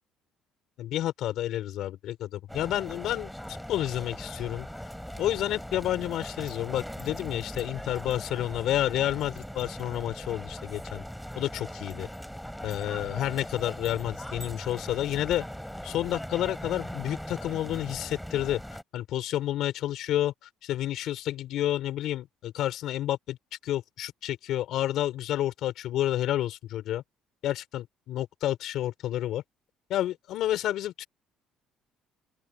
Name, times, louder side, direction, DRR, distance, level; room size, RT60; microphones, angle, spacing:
voice 1, 0.8-3.3 3.7-4.7 5.2-11.0 11.3-12.1 12.6-15.4 15.8-18.6 18.9-20.3 20.6-23.4 23.6-27.0 27.4-29.4 29.9-31.1, left 13 dB, 70° left, 4.3 m, -30 dB
sound 1, 2.5-18.8, equal, ahead, 7.0 m, -40 dB
open air
cardioid pair, 120°, 0 cm